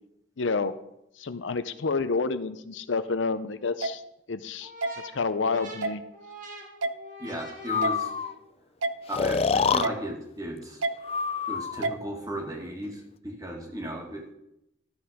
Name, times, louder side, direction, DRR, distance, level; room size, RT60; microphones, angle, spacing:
voice 1, 0.4-0.8 1.2-4.0 4.3-4.7 5.0-6.0, left 4 dB, 75° left, 12 dB, 0.6 m, -29 dB
sound 1, 3.8-3.9 4.8-4.9 5.8-6.0 6.8-6.9 7.8-8.0 8.8-8.9 9.8-10.0 10.8-10.9 11.8-12.0, right 3 dB, 85° right, 0.6 m, -28 dB
sound 2, 4.6-8.5, equal, 40° right, 2.0 m, -44 dB
voice 2, 7.2-8.1 9.1-10.8 11.5-14.3, right 1 dB, 20° right, 1 dB, 2.0 m, -36 dB
Breathing, 7.7-8.3 9.1-9.9 11.0-11.9, left 5 dB, 30° left, 0.3 m, -26 dB
13.0 x 8.0 x 5.0 m, 0.81 s
head